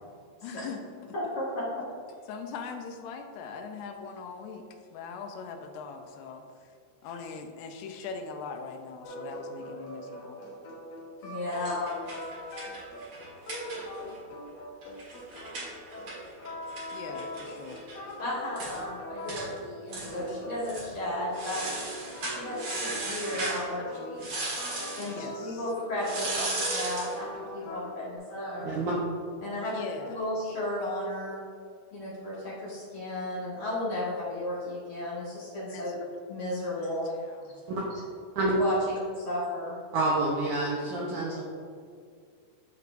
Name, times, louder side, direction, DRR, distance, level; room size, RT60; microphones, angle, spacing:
voice 1, 0.4-1.1 2.3-4.7 4.9-6.7 7.0-10.4 16.9-17.9 25.1-25.6 29.6-30.3 35.7-35.9 37.2-37.6, left 5 dB, 85° left, 5 dB, 2.7 m, -41 dB
voice 2, 1.1-1.8 11.2-11.9 18.2-21.7 22.2-24.5 25.0-28.8 29.4-31.4 31.9-36.0 36.3-37.1 38.5-39.8, left 1 dB, 45° left, -8 dB, 2.1 m, -34 dB
sound 1, 9.0-28.2, equal, 65° left, 1.6 m, -42 dB
sound 2, 11.5-14.2 14.5-14.6 14.8-18.0 18.3-18.4 18.6-18.8 19.3-19.5 19.9-20.3 20.6-20.9 21.3-23.6 24.2-25.1 26.0-27.2, right 2 dB, 45° right, 1.9 m, -36 dB
voice 3, 39.9-41.4, right 2 dB, 75° right, -5 dB, 1.8 m, -28 dB
13.0 x 4.7 x 2.6 m, 2.2 s
omnidirectional pair, 4.7 m